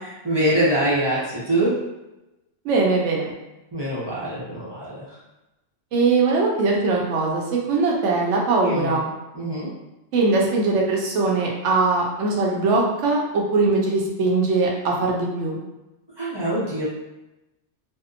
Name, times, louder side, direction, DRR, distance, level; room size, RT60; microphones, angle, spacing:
voice 1, 0.0-1.8 3.7-5.2 8.6-9.0 9.3-9.7 16.2-16.8, right 1 dB, 30° right, -9 dB, 0.5 m, -24 dB
voice 2, 2.6-3.3 5.9-7.4 7.7-9.1 10.1-15.6, right 3 dB, 75° right, -1 dB, 0.9 m, -21 dB
2.7 x 2.0 x 2.4 m, 0.99 s
omnidirectional pair, 1.3 m